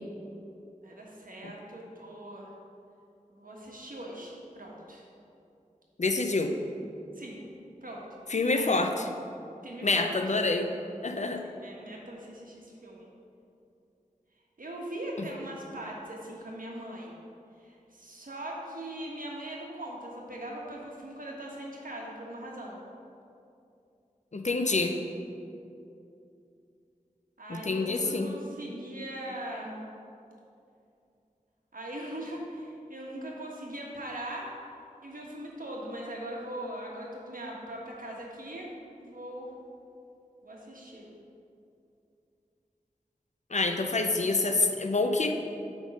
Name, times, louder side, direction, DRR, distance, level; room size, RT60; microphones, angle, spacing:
voice 1, 0.8-2.5 3.3-5.1 7.1-7.4 7.8-8.2 8.5-8.9 9.6-10.2 11.4-13.1 14.6-17.2 17.6-22.8 27.4-29.9 31.7-34.5 35.0-38.7 39.0-39.5 40.4-41.0 43.8-43.9, right 1 dB, 80° right, -2 dB, 1.3 m, -40 dB
voice 2, 6.0-6.5 8.3-8.9 9.8-10.7 11.0-11.4 24.3-25.0 27.5-28.3 43.5-45.3, left 3 dB, 55° left, 5 dB, 0.6 m, -27 dB
8.9 x 3.7 x 5.2 m, 2.6 s
wide cardioid pair, 45°, 14 cm